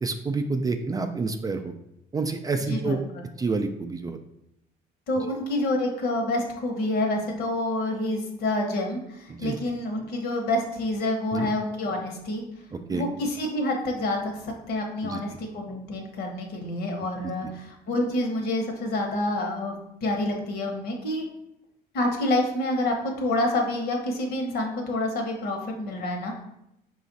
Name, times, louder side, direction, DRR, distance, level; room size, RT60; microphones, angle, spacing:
voice 1, 0.0-1.7 2.1-3.0 3.4-4.2 9.3-9.6 11.3-11.5 12.7-13.0 15.0-15.2, right 3 dB, 20° right, 6 dB, 0.3 m, -28 dB
voice 2, 2.7-3.2 5.1-12.4 12.9-19.8 20.0-21.3 21.9-26.4, left 1 dB, 70° left, 3 dB, 1.0 m, -28 dB
5.0 x 2.4 x 4.0 m, 0.82 s
cardioid pair, 110°, 17 cm